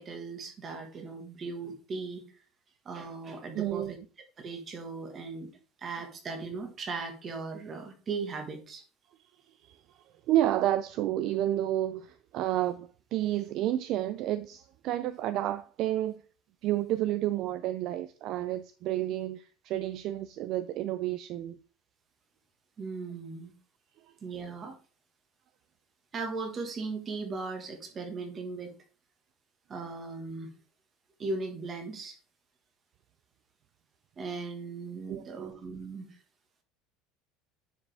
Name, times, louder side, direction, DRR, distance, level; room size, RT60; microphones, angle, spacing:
voice 1, 0.0-2.2 2.8-4.0 4.4-5.5 5.8-8.8 22.8-23.5 24.2-24.8 26.1-28.8 29.7-30.5 31.2-32.2 34.2-36.2, right 4 dB, 25° right, 1.5 m, -38 dB
voice 2, 3.5-3.9 9.7-9.8 10.3-16.2 16.6-21.6 35.1-35.6, right 13 dB, 45° right, 0.4 m, -30 dB
9.7 x 4.9 x 3.4 m
cardioid pair, 170°, 0 cm